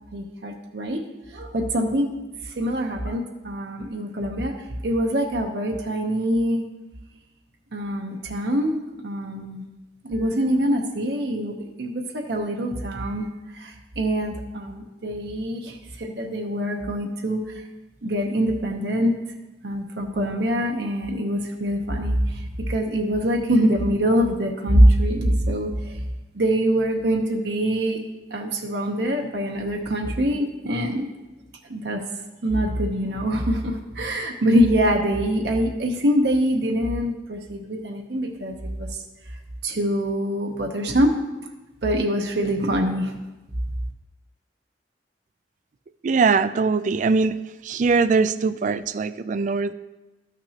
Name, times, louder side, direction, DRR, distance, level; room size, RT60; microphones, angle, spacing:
voice 1, 0.1-1.0 1.3-2.1 2.4-4.5 4.8-6.6 7.7-8.8 9.0-9.6 10.0-13.3 13.5-17.4 18.0-19.2 19.6-26.0 26.3-28.0 28.3-31.1 31.7-32.0 32.4-38.9 39.6-41.1 41.8-43.1, equal, 65° right, 2 dB, 0.8 m, -24 dB
voice 2, 46.0-47.4 47.6-49.7, right 4 dB, 45° right, 13 dB, 0.3 m, -21 dB
13.0 x 5.9 x 2.9 m, 1.0 s
head